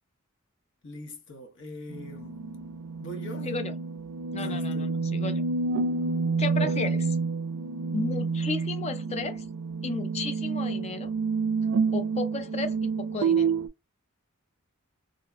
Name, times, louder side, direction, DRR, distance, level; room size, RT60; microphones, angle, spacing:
voice 1, 0.8-2.4 3.0-3.5 4.4-4.9, left 1 dB, 60° left, 0.9 m, -42 dB
sound 1, 1.9-13.7, right 4 dB, 75° right, 0.4 m, -29 dB
voice 2, 4.3-5.4 6.4-7.2 7.9-9.5 9.8-11.1 11.9-13.6, left 3 dB, 30° left, 0.5 m, -33 dB
2.6 x 2.2 x 2.4 m
head